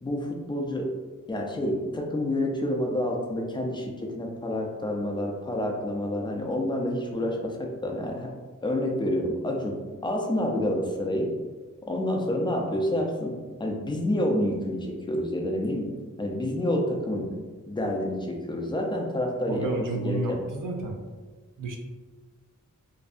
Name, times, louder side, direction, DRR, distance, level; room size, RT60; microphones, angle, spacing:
voice 1, 0.0-0.9 1.3-8.3 8.6-9.8 10.0-11.3 11.9-13.3 13.6-15.9 16.2-17.3 17.7-19.7 20.0-20.4, left 1 dB, 15° left, 0 dB, 0.3 m, -28 dB
voice 2, 19.5-21.0 21.6-21.8, right 2 dB, 75° right, 2 dB, 0.5 m, -31 dB
2.6 x 2.2 x 2.4 m, 1.4 s
wide cardioid pair, 105°, 32 cm